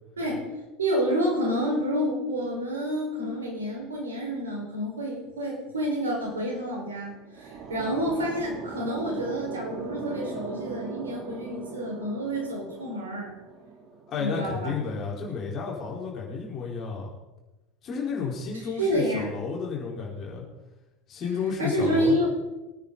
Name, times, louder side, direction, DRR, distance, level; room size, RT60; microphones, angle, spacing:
voice 1, 0.2-0.5 0.8-13.3 14.2-14.7 18.8-19.3 21.6-22.3, equal, 75° right, -2 dB, 5.0 m, -28 dB
sound 1, 7.0-14.1, right 4 dB, 40° right, 2.5 m, -40 dB
voice 2, 14.1-17.1 17.8-20.4 21.1-22.2, left 5 dB, 35° left, -2 dB, 4.5 m, -32 dB
24.0 x 9.6 x 4.1 m, 1.1 s
figure-of-eight pair, 75°, 0 cm